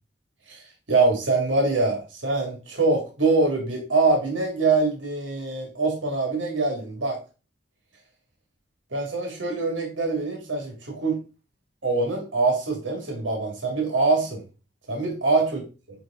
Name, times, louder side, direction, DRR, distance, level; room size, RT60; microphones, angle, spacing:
voice 1, 0.9-7.2 8.9-11.2 11.8-14.4 14.9-15.6, right 3 dB, 90° right, 1 dB, 2.0 m, -24 dB
9.5 x 3.2 x 3.6 m, 0.34 s
head